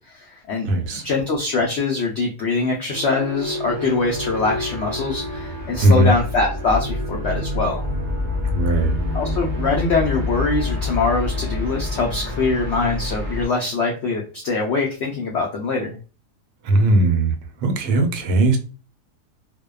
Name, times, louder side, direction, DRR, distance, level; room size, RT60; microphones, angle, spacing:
voice 1, 0.1-7.9 9.1-16.0, left 3 dB, 90° left, 0 dB, 0.5 m, -23 dB
voice 2, 0.6-1.0 5.8-6.1 8.5-9.0 16.6-17.3 17.6-18.6, right 2 dB, 75° right, 5 dB, 1.1 m, -18 dB
sound 1, 2.9-13.5, left 2 dB, 60° right, 0.5 m, -27 dB
2.6 x 2.1 x 2.2 m, 0.35 s
omnidirectional pair, 1.7 m